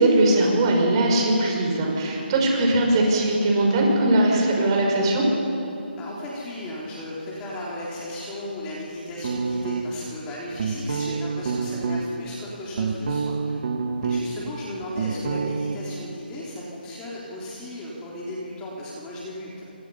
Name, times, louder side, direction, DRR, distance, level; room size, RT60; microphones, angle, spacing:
voice 1, 0.0-5.3, right 1 dB, 25° right, 0 dB, 5.7 m, -20 dB
voice 2, 2.4-2.7 6.0-13.6 14.0-19.6, left 1 dB, 15° left, -5 dB, 3.6 m, -35 dB
sound 1, 9.2-10.1 10.6-12.0 12.5-14.4 14.7-15.8, right 5 dB, 45° right, 1.9 m, -27 dB
27.0 x 26.5 x 5.7 m, 2.8 s
hypercardioid pair, 160°, 6 cm